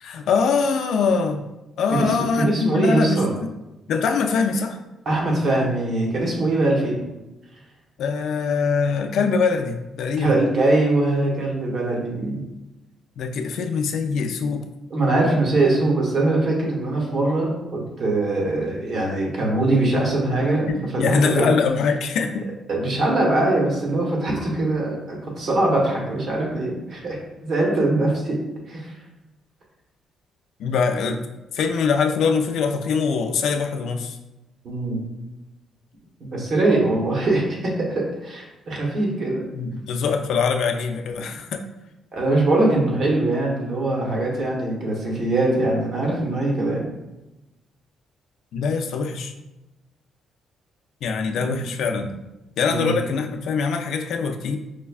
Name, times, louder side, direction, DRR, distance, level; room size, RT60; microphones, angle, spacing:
voice 1, 0.0-1.4 1.8-3.5 3.9-4.8 8.0-10.4 13.2-14.7 20.7-22.5 30.6-31.2 31.5-34.2 39.5-41.6 48.5-49.3 51.0-52.1 52.6-54.6, left 5 dB, 75° left, 5 dB, 0.3 m, -23 dB
voice 2, 1.9-3.3 5.0-7.0 10.2-12.4 14.9-20.7 21.0-21.6 22.7-28.4 28.7-28.9 34.6-35.0 36.2-39.5 42.1-46.9 51.3-51.6 52.7-52.9, right 2 dB, 60° right, -2 dB, 1.1 m, -22 dB
4.9 x 2.2 x 2.3 m, 1.0 s
cardioid pair, 90°, 0 cm